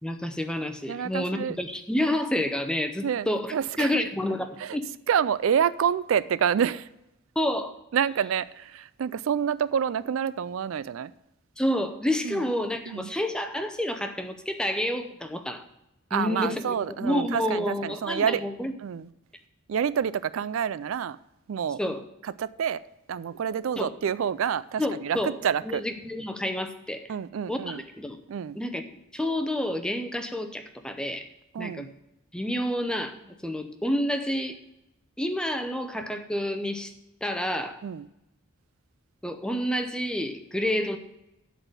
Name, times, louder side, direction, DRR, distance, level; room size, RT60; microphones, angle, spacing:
voice 1, 0.0-4.9 7.4-7.7 11.6-15.6 16.1-16.7 17.0-18.7 21.8-22.0 23.8-23.9 24.8-25.4 25.6-27.1 27.5-28.2 28.6-31.3 31.6-31.9 32.3-34.6 35.2-36.9 37.2-37.8 39.2-41.0, left 1 dB, 5° left, 0.6 m, -29 dB
voice 2, 0.9-1.6 3.0-4.1 4.6-4.8 5.1-6.9 7.9-11.1 12.2-12.4 12.9-13.1 16.1-18.4 18.8-19.1 19.7-21.2 21.5-21.8 22.2-22.8 23.1-25.9 27.1-27.8 28.3-28.6 31.5-31.9 37.8-38.1, right 8 dB, 75° right, 0.4 m, -28 dB
12.0 x 4.1 x 8.0 m
head